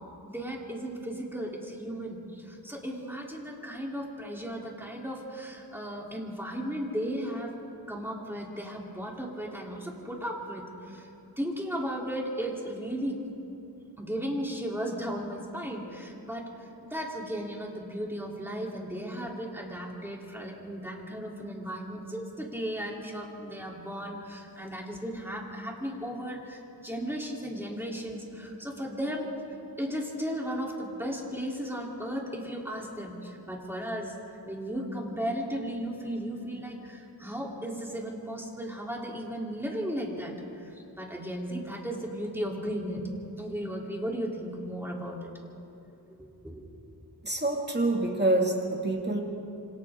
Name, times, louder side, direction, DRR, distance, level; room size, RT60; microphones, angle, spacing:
voice 1, 0.2-7.5 7.9-11.1 11.4-13.2 14.0-29.3 29.8-34.1 34.5-43.1 43.4-45.3 46.2-46.7, equal, 5° right, -2 dB, 3.5 m, -35 dB
voice 2, 47.2-49.2, right 2 dB, 25° right, 0 dB, 2.4 m, -26 dB
27.0 x 27.0 x 3.8 m, 2.9 s
wide cardioid pair, 70°, 39 cm